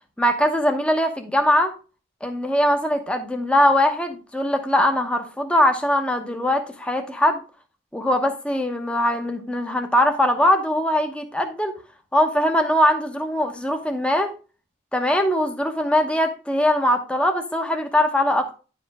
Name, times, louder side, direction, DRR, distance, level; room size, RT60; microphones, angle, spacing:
voice 1, 0.2-1.7 2.2-7.4 7.9-11.7 12.1-14.3 14.9-18.5, left 1 dB, 5° left, 5 dB, 0.9 m, -21 dB
10.5 x 5.1 x 3.5 m, 0.35 s
head